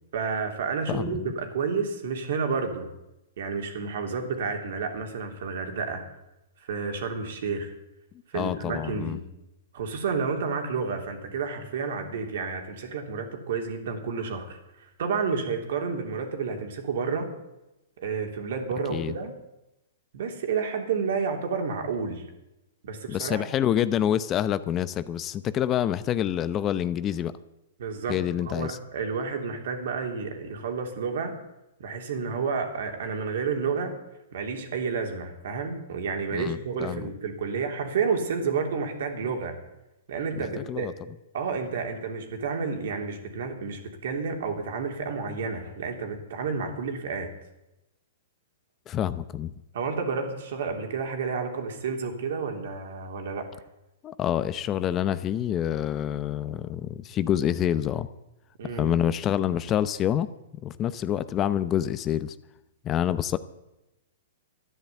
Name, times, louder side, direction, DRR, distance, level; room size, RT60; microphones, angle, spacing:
voice 1, 0.1-2.9 3.4-6.0 6.7-7.7 8.3-9.2 9.7-17.3 18.0-19.3 20.1-22.2 22.8-23.5 27.8-31.3 31.8-33.9 34.3-39.6 40.1-40.9 41.3-47.3 49.7-53.5 58.6-58.9, right 5 dB, 65° right, 4 dB, 3.2 m, -30 dB
voice 2, 8.3-9.2 18.9-19.1 23.1-27.3 28.1-28.8 36.3-37.0 40.7-40.9 48.9-49.5 54.0-58.1 58.7-60.3 60.6-62.3 62.8-63.4, left 10 dB, 25° left, 14 dB, 0.7 m, -27 dB
12.5 x 10.5 x 8.4 m, 0.94 s
hypercardioid pair, 130°, 0 cm